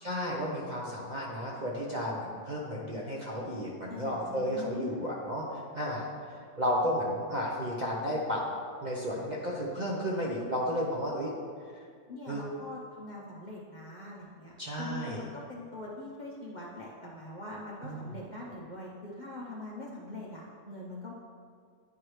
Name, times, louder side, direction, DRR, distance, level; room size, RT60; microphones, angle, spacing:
voice 1, 0.0-6.1 6.6-8.4 8.8-11.3 12.3-12.4 14.6-15.3 17.8-18.1, equal, 40° right, -4 dB, 0.7 m, -33 dB
voice 2, 3.9-5.0 12.1-21.1, left 2 dB, 40° left, -5 dB, 0.7 m, -42 dB
10.0 x 4.7 x 3.1 m, 2.1 s
omnidirectional pair, 1.6 m